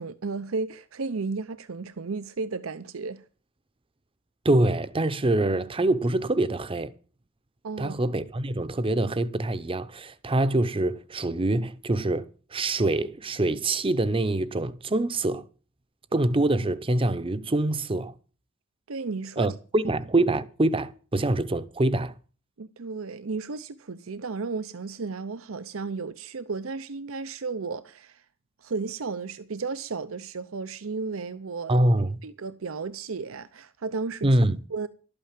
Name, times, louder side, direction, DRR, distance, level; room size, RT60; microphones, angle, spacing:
voice 1, 0.0-3.2 7.6-7.9 18.9-19.5 22.6-28.2 28.6-31.8 32.2-34.3 34.7-34.9, right 4 dB, 85° right, 0.7 m, -33 dB
voice 2, 4.4-6.9 7.8-15.5 16.1-18.1 19.4-22.2 31.7-32.2 34.2-34.6, right 2 dB, 25° right, 0.7 m, -25 dB
12.5 x 8.8 x 7.4 m
head